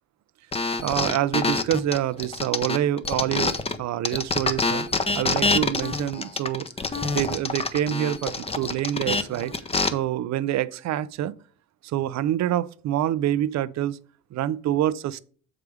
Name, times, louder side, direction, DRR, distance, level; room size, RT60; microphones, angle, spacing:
sound 1, 0.5-3.8 4.0-9.9, left 3 dB, 20° left, 0.7 m, -26 dB
voice 1, 0.8-6.7 7.0-9.5 9.9-11.3 11.8-14.0 14.3-15.2, right 12 dB, 65° right, 0.6 m, -26 dB
6.6 x 4.9 x 4.8 m
cardioid pair, 90°, 30 cm